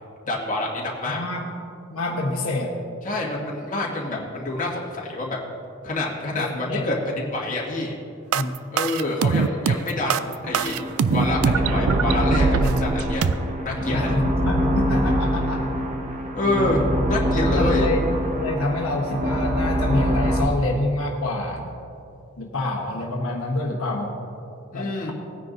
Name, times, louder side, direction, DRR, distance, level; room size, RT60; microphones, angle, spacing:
voice 1, 0.3-1.2 3.0-5.4 5.8-7.9 8.7-10.7 11.1-14.1 16.3-17.9 24.7-25.1, left 2 dB, 40° left, -4 dB, 1.9 m, -27 dB
voice 2, 1.1-1.5 1.9-2.8 4.1-4.3 6.3-6.9 8.3-8.6 13.9-15.6 17.3-18.0 18.4-21.7 22.4-24.1 24.7-25.1, left 2 dB, 75° left, -1 dB, 1.2 m, -27 dB
sound 1, 8.3-13.3, right 6 dB, 80° right, 0.4 m, -22 dB
sound 2, 10.4-20.4, equal, 35° right, 1.0 m, -24 dB
18.5 x 9.8 x 2.7 m, 2.6 s
head